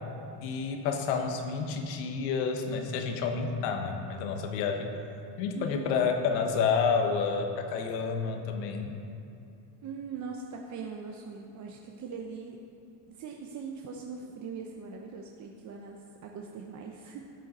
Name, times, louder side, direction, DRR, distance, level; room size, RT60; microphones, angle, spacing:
voice 1, 0.4-4.9 5.4-9.0, left 5 dB, 85° left, 4 dB, 1.3 m, -29 dB
voice 2, 5.5-6.1 9.8-12.6 13.1-17.2, right 5 dB, 35° right, 1 dB, 0.8 m, -41 dB
12.5 x 7.9 x 4.2 m, 2.7 s
cardioid pair, 130°, 48 cm